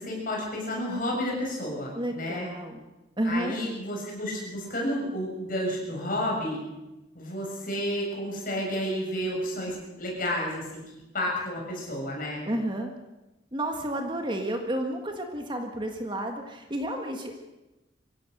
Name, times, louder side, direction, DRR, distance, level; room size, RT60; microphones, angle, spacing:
voice 1, 0.0-2.5 3.2-6.6 7.1-10.8 11.1-12.4, equal, 45° left, -1 dB, 6.9 m, -31 dB
voice 2, 1.9-2.9 3.2-3.6 12.4-12.9 13.5-17.3, right 1 dB, 25° right, 4 dB, 1.7 m, -31 dB
24.0 x 16.0 x 6.7 m, 1.0 s
head